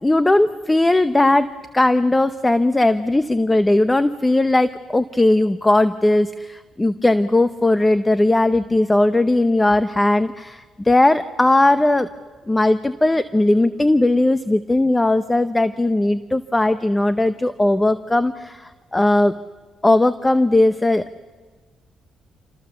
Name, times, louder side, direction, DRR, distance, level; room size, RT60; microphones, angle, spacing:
voice 1, 0.0-12.1 12.5-19.3 19.8-21.0, left 2 dB, 15° left, 11 dB, 0.8 m, -18 dB
28.0 x 26.0 x 7.1 m, 1.4 s
cardioid pair, 90°, 0 cm